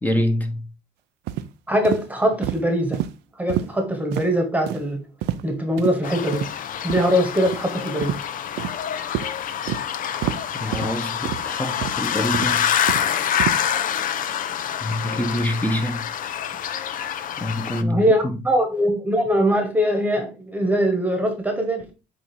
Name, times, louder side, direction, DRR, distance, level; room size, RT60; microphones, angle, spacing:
voice 1, 0.0-0.7 10.6-12.7 14.8-16.0 17.4-18.4, left 1 dB, 10° left, 1.1 m, -25 dB
sound 1, 1.3-1.5 1.8-2.0 2.4-2.6 2.9-3.1 3.5-3.7 4.1-4.3 4.7-4.8 5.2-5.5 5.8-5.9 6.3-6.5 6.9-7.0 7.5-7.6 8.0-8.2 8.6-8.8 9.1-9.3 9.7-9.8 10.2-10.4 10.7-10.9 11.2-11.4 11.8-12.0 12.3-13.1 13.4-13.6, right 13 dB, 85° right, 0.6 m, -27 dB
voice 2, 1.7-3.0 3.4-5.0 5.4-6.5 6.8-8.2 17.8-21.9, equal, 10° right, 1.4 m, -22 dB
sound 2, 6.0-17.8, left 9 dB, 55° left, 0.6 m, -26 dB
8.2 x 2.8 x 4.5 m
cardioid pair, 110°, 17 cm